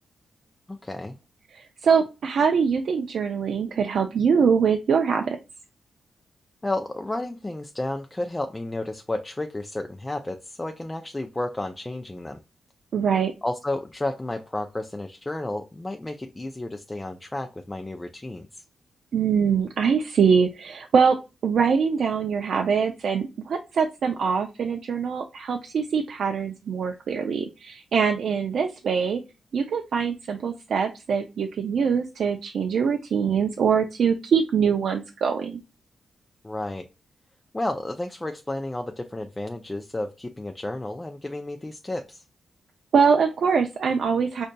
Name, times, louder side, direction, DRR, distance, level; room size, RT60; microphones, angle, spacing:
voice 1, 0.7-1.2 6.6-12.4 13.4-18.6 36.4-36.9 37.5-42.2, left 2 dB, 15° left, 5 dB, 0.3 m, -32 dB
voice 2, 1.5-5.4 12.9-13.3 19.1-21.2 21.4-29.2 29.5-35.6 42.9-44.5, right 6 dB, 70° right, 4 dB, 0.4 m, -23 dB
5.0 x 2.6 x 2.2 m, 0.28 s
cardioid pair, 110°, 0 cm